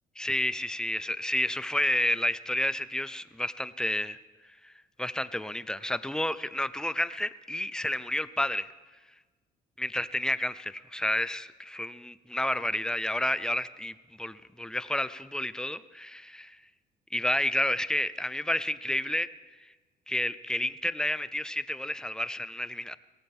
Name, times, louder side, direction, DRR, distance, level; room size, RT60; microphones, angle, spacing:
voice 1, 0.2-4.2 4.6-4.7 5.0-8.7 9.8-16.6 17.1-19.3 20.1-23.0, left 1 dB, 5° left, 15 dB, 0.6 m, -30 dB
22.0 x 17.0 x 3.7 m, 1.3 s
cardioid pair, 110°, 17 cm